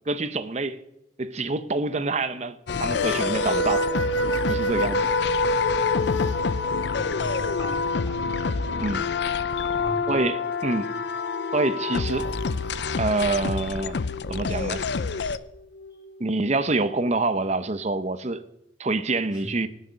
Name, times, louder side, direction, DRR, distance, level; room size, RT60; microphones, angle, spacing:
voice 1, 0.1-0.8 1.2-3.9 4.5-5.1 8.8-9.0 10.1-10.9 11.5-12.3 13.0-14.0 14.3-14.8 16.2-18.4 18.8-19.7, right 2 dB, 40° right, 0.8 m, -26 dB
sound 1, 2.7-15.4, left 5 dB, 70° left, 0.5 m, -27 dB
sound 2, 2.9-10.2 11.3-17.4, equal, 90° left, 1.1 m, -31 dB
voice 2, 6.9-8.3 9.7-10.1 19.3-19.5, equal, 25° left, 3.2 m, -39 dB
18.5 x 6.6 x 6.4 m
head